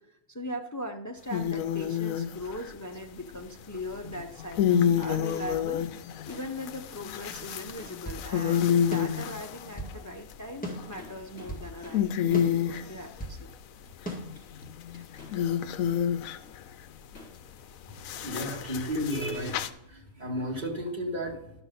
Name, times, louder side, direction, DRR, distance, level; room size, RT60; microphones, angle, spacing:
voice 1, 0.3-5.9 6.3-13.5, equal, 30° left, 4 dB, 0.3 m, -39 dB
sound 1, 1.3-2.7 4.0-9.9 10.5-11.2 11.6-11.7 11.9-12.9 14.2-16.6 18.0-19.7, left 9 dB, 75° left, 1.0 m, -29 dB
sound 2, 2.2-5.0 5.3-6.5 6.8-8.4 8.7-8.8 9.1-9.7 10.0-10.1 10.7-12.5 13.0-13.1 13.6-15.6 15.9-20.3, left 2 dB, 50° left, 4.3 m, -54 dB
sound 3, 7.3-8.3 8.9-10.0 10.6-11.7 12.3-13.4 14.1-14.2, right 1 dB, 5° left, 1.7 m, -39 dB
voice 2, 17.9-21.5, equal, 30° right, -3 dB, 2.5 m, -33 dB
12.0 x 6.1 x 4.1 m, 0.80 s
omnidirectional pair, 1.5 m